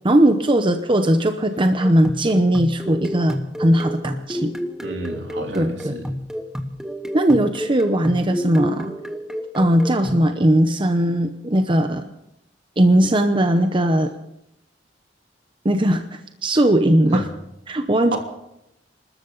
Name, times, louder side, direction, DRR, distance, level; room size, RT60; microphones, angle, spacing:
voice 1, 0.0-4.5 5.5-6.0 7.1-8.9 9.5-12.0 12.8-14.1 15.6-17.2 17.7-18.2, right 1 dB, 30° right, 7 dB, 0.8 m, -18 dB
sound 1, 1.8-10.3, equal, 5° right, 1.1 m, -30 dB
voice 2, 4.8-6.1 17.1-17.2 18.1-18.2, right 2 dB, 75° right, 2 dB, 3.1 m, -30 dB
27.0 x 13.0 x 4.0 m, 0.83 s
head